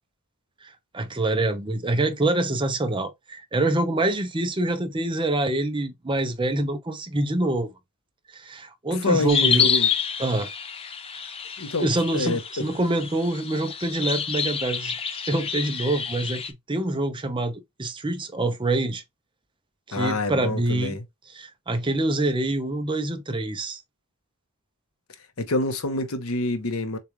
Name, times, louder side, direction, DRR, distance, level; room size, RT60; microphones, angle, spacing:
voice 1, 0.6-7.7 8.3-9.7 10.2-10.5 11.8-16.4 16.7-19.0 19.9-20.9 21.3-23.8, right 2 dB, 20° right, 0.6 m, -26 dB
voice 2, 8.9-9.9 11.6-11.9 12.1-12.6 19.9-21.0 25.4-27.0, left 2 dB, 70° left, 0.9 m, -26 dB
sound 1, 9.3-16.5, left 6 dB, 25° left, 0.5 m, -28 dB
6.8 x 2.4 x 3.1 m
head